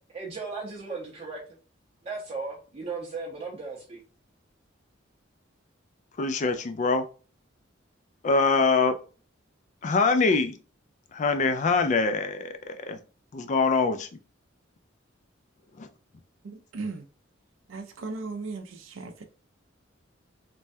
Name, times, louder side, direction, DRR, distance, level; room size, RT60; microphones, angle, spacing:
voice 1, 0.1-1.4 2.0-4.0, right 4 dB, 35° right, 0.6 m, -36 dB
voice 2, 6.2-7.1 8.2-9.0 9.8-10.5 11.1-13.0 13.3-14.1 15.8-15.9, left 4 dB, 40° left, 0.3 m, -24 dB
voice 3, 16.4-17.1 17.7-19.2, right 3 dB, 75° right, 0.4 m, -37 dB
3.2 x 2.2 x 2.5 m
head